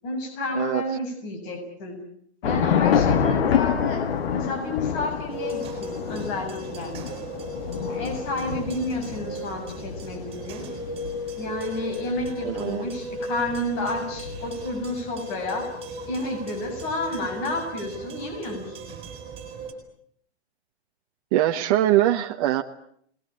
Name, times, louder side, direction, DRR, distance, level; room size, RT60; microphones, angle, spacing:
voice 1, 0.0-2.0 2.4-4.0 4.3-6.9 7.8-10.6 11.4-15.7 16.1-18.9, left 1 dB, 35° left, 3 dB, 7.2 m, -31 dB
Thunder / Rain, 2.4-14.9, left 8 dB, 60° left, 1.9 m, -28 dB
sound 1, 5.3-19.7, equal, 15° right, 7.0 m, -36 dB
voice 2, 12.4-12.8 21.3-22.6, right 13 dB, 35° right, 3 dB, 1.1 m, -22 dB
27.5 x 21.0 x 8.9 m, 0.67 s
hypercardioid pair, 155°, 33 cm